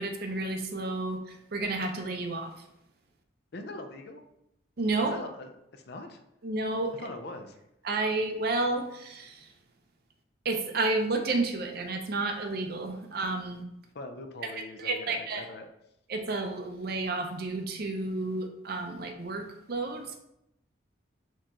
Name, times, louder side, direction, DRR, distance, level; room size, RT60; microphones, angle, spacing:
voice 1, 0.0-2.6 4.8-5.2 6.4-6.9 7.8-9.5 10.4-13.6 14.4-15.5 16.1-20.2, right 2 dB, 50° right, 5 dB, 0.5 m, -31 dB
voice 2, 3.5-4.2 5.0-6.2 7.0-7.6 13.9-15.7, left 2 dB, 55° left, 7 dB, 0.4 m, -42 dB
4.5 x 3.0 x 3.6 m, 0.82 s
head